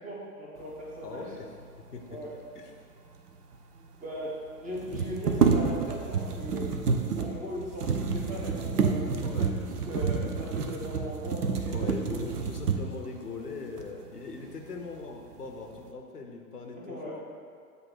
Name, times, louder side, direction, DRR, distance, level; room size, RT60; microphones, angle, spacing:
voice 1, 0.0-1.3 2.1-2.3 4.0-6.8 7.2-12.2 16.7-17.2, equal, 15° right, -4 dB, 1.0 m, -39 dB
voice 2, 1.0-1.5 1.9-2.2 2.5-2.7 9.2-9.6 11.7-17.2, left 4 dB, 85° left, 3 dB, 0.8 m, -40 dB
sound 1, 3.3-3.4 3.5-3.6 4.7-13.1 13.8-13.9 14.3-15.0 15.3-15.9, right 5 dB, 80° right, 0.6 m, -29 dB
7.9 x 2.7 x 4.3 m, 2.2 s
figure-of-eight pair, 100°, 46 cm